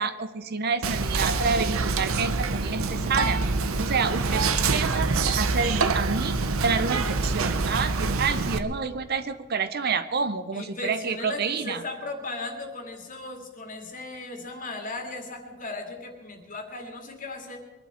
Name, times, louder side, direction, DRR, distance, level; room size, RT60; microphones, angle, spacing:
voice 1, 0.0-3.4 3.7-4.4 4.7-11.8, right 5 dB, 50° right, 11 dB, 0.7 m, -28 dB
Whispering, 0.8-8.6, right 4 dB, 85° right, 0.9 m, -26 dB
voice 2, 10.5-17.6, left 2 dB, 40° left, 3 dB, 2.2 m, -37 dB
23.0 x 11.5 x 4.4 m, 1.3 s
head